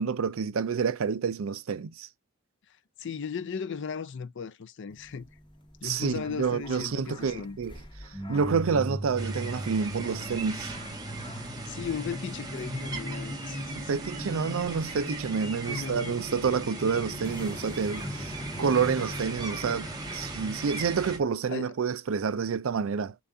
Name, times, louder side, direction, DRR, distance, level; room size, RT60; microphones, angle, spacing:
voice 1, 0.0-2.1 5.8-7.7 8.0-10.7 13.9-23.2, right 6 dB, 70° right, 0.4 m, -29 dB
voice 2, 3.0-5.3 5.8-7.6 11.7-13.9 15.7-16.2 21.5-21.7, left 6 dB, 60° left, 0.5 m, -36 dB
sound 1, 4.9-21.2, equal, 25° left, 1.0 m, -39 dB
sound 2, 9.2-21.2, right 3 dB, 20° right, 1.1 m, -40 dB
7.0 x 2.4 x 2.7 m
head